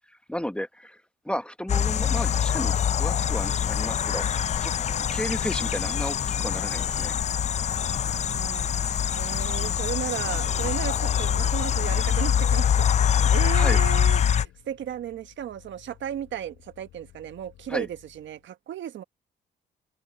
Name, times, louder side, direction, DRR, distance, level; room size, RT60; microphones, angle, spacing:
voice 1, 0.1-4.3 4.6-4.7 5.1-7.1 13.5-13.8 17.7-17.9, equal, 5° left, 1.0 m, -33 dB
sound 1, 1.7-14.5, left 8 dB, 35° left, 0.4 m, -24 dB
Vehicle, 2.6-18.5, left 14 dB, 85° left, 6.4 m, -55 dB
voice 2, 7.9-19.0, right 10 dB, 70° right, 1.4 m, -35 dB
cardioid pair, 90°, 20 cm